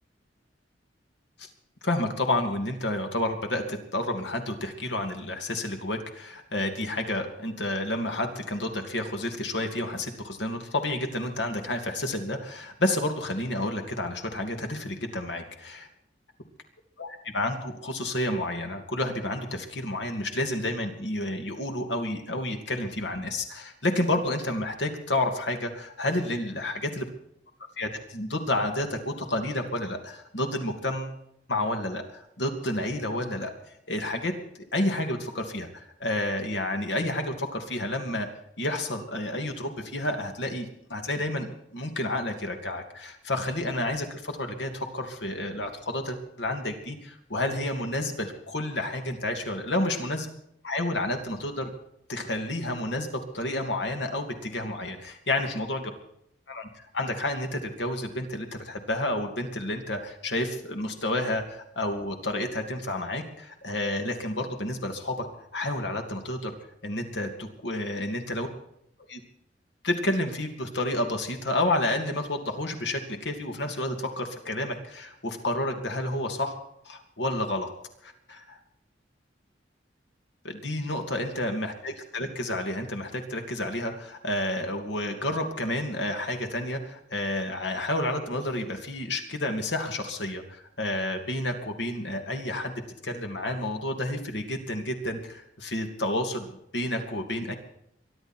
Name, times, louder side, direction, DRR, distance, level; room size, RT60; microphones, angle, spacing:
voice 1, 1.8-15.9 17.0-27.1 27.8-31.1 31.5-33.5 33.9-34.4 34.7-38.3 38.6-50.3 50.6-51.7 52.1-53.1 53.3-55.9 56.5-65.3 65.5-66.5 66.8-68.5 69.1-69.2 69.8-76.5 76.8-77.7 78.3-78.4 80.4-92.7 93.0-96.5 96.7-97.5, left 1 dB, 70° left, 4 dB, 2.8 m, -30 dB
23.5 x 12.0 x 4.6 m, 0.75 s
head